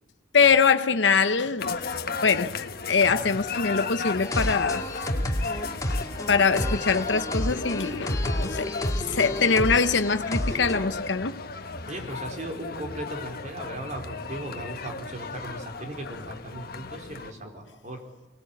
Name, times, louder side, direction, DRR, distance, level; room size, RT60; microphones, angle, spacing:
voice 1, 0.3-1.8 2.2-2.6 2.9-4.8 5.1-5.2 5.5-5.6 6.3-8.7 9.1-11.4, left 5 dB, 75° left, 0.9 m, -23 dB
sound 1, 1.6-17.3, left 4 dB, 55° left, 1.3 m, -35 dB
voice 2, 3.0-3.4 9.0-9.4 10.5-10.7 11.9-18.0, right 1 dB, 45° right, 4.3 m, -38 dB
sound 2, 4.2-10.9, left 1 dB, 20° left, 2.3 m, -30 dB
24.0 x 20.0 x 8.6 m
head